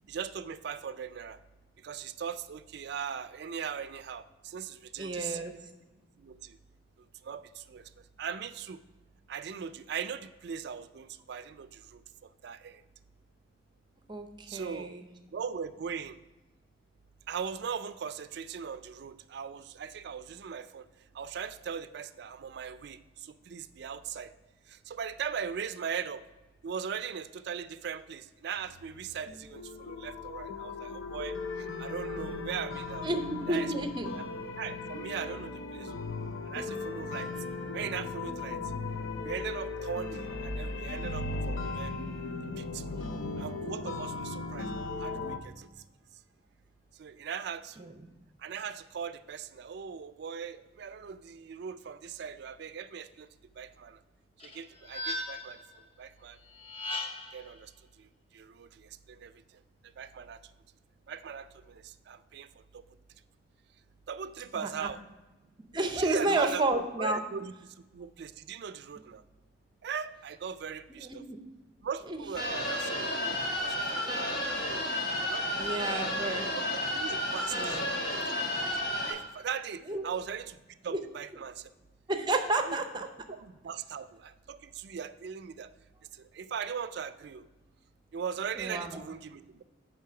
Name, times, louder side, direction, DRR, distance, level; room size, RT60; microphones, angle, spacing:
voice 1, 0.1-1.4 1.8-5.4 6.2-6.6 7.2-7.9 8.2-8.8 9.3-12.8 14.5-14.9 15.3-16.2 17.3-20.9 21.1-24.3 24.7-26.2 26.6-33.1 33.5-33.7 34.1-34.2 34.6-35.9 36.5-37.3 37.7-38.6 39.2-42.0 42.6-42.8 43.4-44.7 45.0-45.7 47.0-47.9 48.4-53.3 53.6-54.0 54.4-55.6 56.0-56.4 57.3-57.7 58.0-59.3 60.0-60.4 61.1-62.5 62.7-62.8 64.1-65.0 66.0-67.5 67.9-69.2 69.8-71.2 71.8-74.8 75.2-75.9 76.5-77.8 78.3-78.4 78.7-80.6 80.8-81.7 82.7-82.8 83.3-85.7 86.1-87.5 88.1-89.6, right 7 dB, 60° right, 12 dB, 0.3 m, -39 dB
voice 2, 5.0-5.5 14.1-15.0 33.0-34.1 47.8-47.9 64.5-64.9 65.7-67.2 71.0-71.4 72.1-72.2 75.5-76.5 77.5-77.9 79.9-80.2 80.9-81.0 82.1-83.1 88.6-89.0, right 2 dB, 25° right, 6 dB, 0.6 m, -31 dB
sound 1, 28.6-45.4, left 3 dB, 85° left, 0.6 m, -37 dB
sound 2, 54.4-55.6 56.6-57.4, left 2 dB, 30° left, 0.8 m, -37 dB
sound 3, 72.4-79.1, left 1 dB, 55° left, 1.6 m, -32 dB
9.5 x 3.4 x 5.8 m, 1.1 s
head